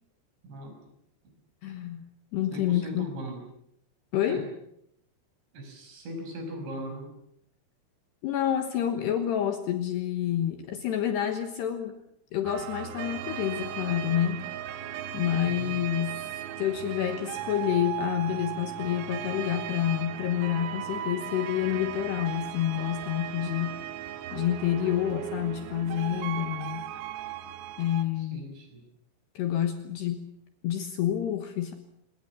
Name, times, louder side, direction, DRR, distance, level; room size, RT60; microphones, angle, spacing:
voice 1, 0.4-0.8 1.2-1.3 2.5-3.5 4.2-4.4 5.5-7.1 15.4-15.8 28.2-28.8, right 1 dB, 60° right, 4 dB, 7.9 m, -39 dB
voice 2, 1.6-2.0 2.3-3.1 4.1-4.4 8.2-12.0 12.3-14.5 15.1-16.3 16.6-23.8 24.3-26.9 27.8-28.4 29.4-30.2 30.6-31.7, left 11 dB, 70° left, 7 dB, 3.0 m, -28 dB
sound 1, 12.5-28.0, right 11 dB, 90° right, 4.2 m, -37 dB
24.5 x 21.5 x 7.3 m, 0.76 s
omnidirectional pair, 5.8 m